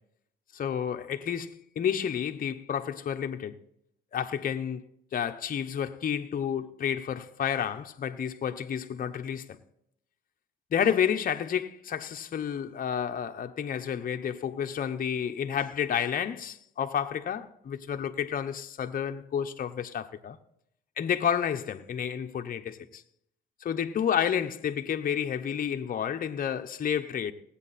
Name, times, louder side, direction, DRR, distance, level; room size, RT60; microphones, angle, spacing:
voice 1, 0.5-3.5 4.1-4.8 5.1-9.6 10.7-20.4 21.0-23.0 23.6-27.3, left 8 dB, 45° left, 0.7 m, -30 dB
18.5 x 8.3 x 4.1 m
cardioid pair, 90°, 20 cm